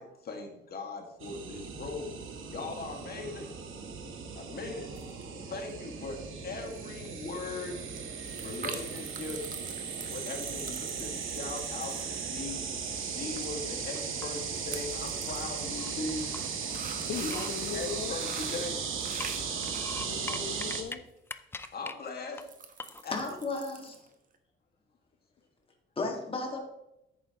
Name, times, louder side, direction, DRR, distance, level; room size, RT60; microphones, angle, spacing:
voice 1, 0.0-2.1 2.5-3.5 4.4-4.9 5.4-7.8 8.4-9.5 10.0-12.7 13.1-16.3 17.2-17.4 17.7-18.9 21.7-22.5 23.0-23.1, left 3 dB, 50° left, 3 dB, 1.9 m, -39 dB
sound 1, 1.2-20.8, right 6 dB, 75° right, 1.5 m, -37 dB
sound 2, 5.0-5.4 5.7-6.1 6.4-6.5 6.7-6.8 7.0-13.1 13.4-13.5 13.7-13.9 14.4-15.6 16.1-20.5 21.6-21.7 22.1-24.1 24.3-24.4, right 5 dB, 40° right, 1.1 m, -45 dB
sound 3, 13.9-14.6 15.0-16.5 17.0-18.7 19.1-21.0 21.3-21.9 22.4-22.5 22.8-23.4, left 3 dB, 10° left, 0.4 m, -43 dB
voice 2, 17.0-18.1 20.0-21.1, left 7 dB, 65° left, 3 dB, 1.0 m, -39 dB
voice 3, 23.1-23.9 26.0-26.7, left 3 dB, 25° left, 1 dB, 1.9 m, -34 dB
10.5 x 9.0 x 3.0 m, 0.87 s
cardioid pair, 135°, 21 cm